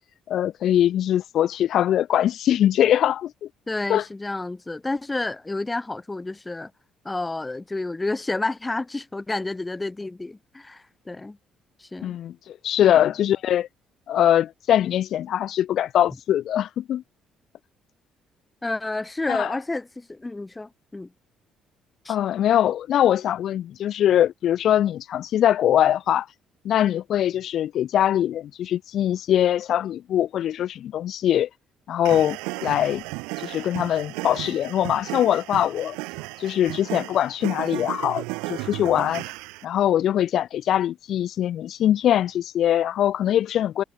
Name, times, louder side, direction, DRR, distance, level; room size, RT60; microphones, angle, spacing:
voice 1, 0.3-3.5 3.9-4.0 12.0-13.7 14.1-17.0 19.3-19.6 22.1-26.3 26.6-31.5 31.9-33.0 33.4-36.0 36.4-38.2 38.5-39.2 39.6-43.8, left 11 dB, 65° left, 2.0 m, -22 dB
voice 2, 3.7-6.7 7.0-11.4 11.8-12.2 12.8-13.1 18.6-21.1 22.1-22.2, left 2 dB, 20° left, 3.7 m, -30 dB
sound 1, 32.0-39.6, right 27 dB, 85° right, 1.0 m, -34 dB
hypercardioid pair, 60°, 0 cm